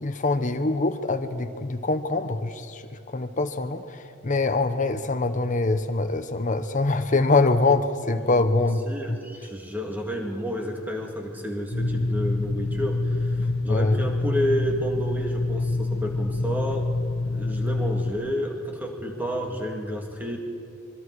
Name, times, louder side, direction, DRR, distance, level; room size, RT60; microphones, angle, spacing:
voice 1, 0.0-2.8 3.1-3.8 4.2-8.8 9.1-9.2 13.6-14.0, left 3 dB, 40° left, 8 dB, 1.0 m, -24 dB
voice 2, 8.2-17.0 17.3-20.4, equal, 10° right, 1 dB, 2.2 m, -30 dB
sound 1, 11.7-18.1, left 2 dB, 60° left, 1.4 m, -26 dB
25.5 x 21.5 x 4.8 m, 2.4 s
head